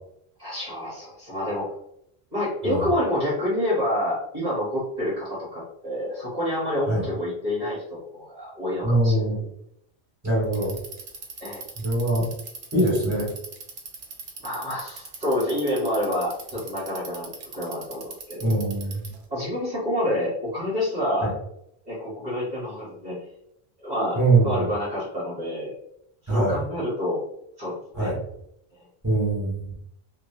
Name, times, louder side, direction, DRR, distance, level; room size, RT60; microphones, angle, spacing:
voice 1, 0.4-1.7 2.3-9.2 11.4-11.6 14.4-18.5 19.3-21.3 21.8-23.2 23.8-24.2 24.4-25.7 26.2-27.2 27.6-28.1 28.8-28.9, left 1 dB, 45° right, -9 dB, 1.3 m, -28 dB
voice 2, 8.8-9.4 10.2-10.8 11.8-12.3 12.7-13.3 18.4-19.1 21.2-21.3 24.1-24.7 26.3-26.6 27.9-28.2 29.0-29.7, right 2 dB, 15° right, -7 dB, 1.5 m, -23 dB
Bicycle, 10.4-19.2, right 4 dB, 80° right, 0.9 m, -40 dB
2.9 x 2.4 x 2.7 m, 0.75 s
omnidirectional pair, 1.0 m